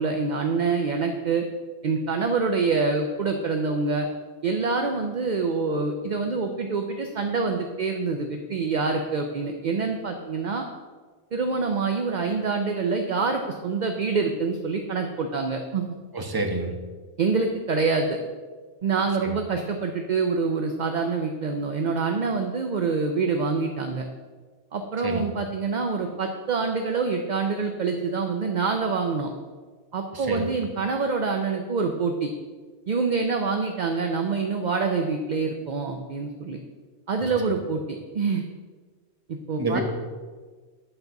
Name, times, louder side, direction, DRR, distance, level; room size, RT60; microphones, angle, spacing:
voice 1, 0.0-1.4 1.8-4.1 4.4-10.7 11.3-15.8 17.2-18.2 18.8-24.1 24.7-29.3 29.9-32.3 32.9-36.6 37.1-37.8 38.1-38.4 39.3-39.8, right 4 dB, 50° right, 4 dB, 0.6 m, -26 dB
voice 2, 16.1-16.7 19.2-19.4 25.0-25.3 30.1-30.5 39.6-39.8, right 2 dB, 20° right, 3 dB, 0.9 m, -28 dB
9.8 x 4.0 x 5.8 m, 1.4 s
omnidirectional pair, 1.2 m